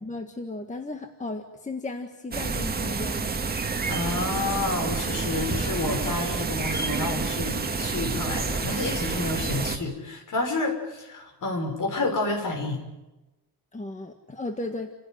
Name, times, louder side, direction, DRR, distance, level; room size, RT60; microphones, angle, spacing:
voice 1, 0.0-3.3 13.7-14.9, left 2 dB, 20° left, 5 dB, 1.7 m, -35 dB
sound 1, 2.3-9.8, right 4 dB, 25° right, 1.8 m, -29 dB
voice 2, 3.9-12.8, left 2 dB, 50° left, 4 dB, 6.3 m, -29 dB
29.5 x 16.5 x 9.5 m, 1.0 s
wide cardioid pair, 155°, 40 cm